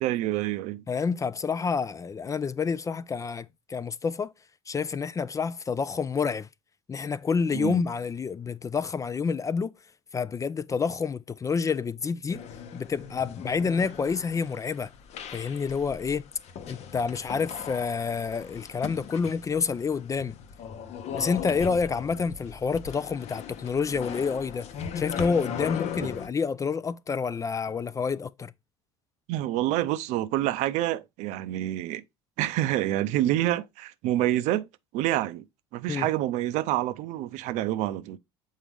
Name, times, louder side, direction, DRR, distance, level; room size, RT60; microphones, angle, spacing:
voice 1, 0.0-0.8 7.5-7.8 29.3-32.0 32.4-34.7 34.9-35.4 35.7-38.2, right 14 dB, 60° right, 0.6 m, -27 dB
voice 2, 0.9-4.3 4.7-6.5 6.9-9.7 10.1-12.4 12.7-14.9 15.3-16.3 16.7-20.4 21.1-24.7 25.0-28.5 35.9-36.1, left 5 dB, 25° left, 0.4 m, -28 dB
sound 1, 12.3-26.3, left 7 dB, 55° left, 0.9 m, -39 dB
7.4 x 4.0 x 3.4 m
hypercardioid pair, 65°, 14 cm